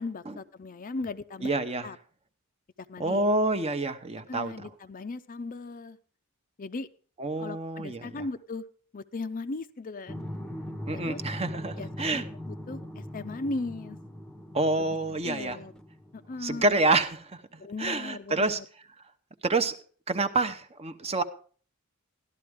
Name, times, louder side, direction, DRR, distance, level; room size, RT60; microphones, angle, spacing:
voice 1, 0.0-1.5 1.8-2.0 2.8-3.3 4.3-6.0 6.6-6.9 7.4-8.6 8.9-10.2 10.9-11.2 11.8-14.0 14.8-15.7 16.1-16.8 17.6-18.7, left 3 dB, 40° left, 12 dB, 0.5 m, -37 dB
voice 2, 1.4-1.9 3.0-4.5 7.2-8.2 10.9-12.2 14.5-15.6 16.4-17.3 17.8-18.6 19.4-19.8 20.1-21.2, right 2 dB, 30° right, 9 dB, 0.8 m, -27 dB
sound 1, 10.1-16.6, left 1 dB, 5° left, 0.8 m, -40 dB
13.5 x 12.0 x 3.5 m, 0.43 s
head